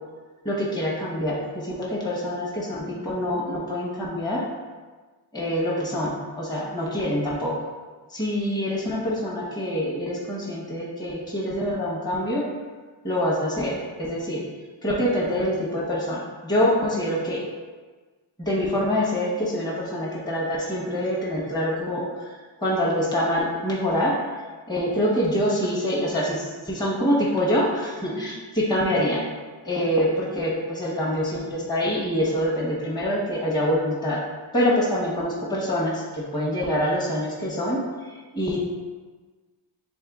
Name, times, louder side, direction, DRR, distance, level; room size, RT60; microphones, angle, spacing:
voice 1, 0.4-4.4 5.3-7.5 8.1-12.5 13.0-14.4 14.8-17.4 18.4-22.3 22.6-24.4 24.7-29.2 29.6-34.2 34.5-37.8 38.1-38.6, equal, 10° left, -6 dB, 1.0 m, -25 dB
3.5 x 3.2 x 3.5 m, 1.4 s
cardioid pair, 65°, 48 cm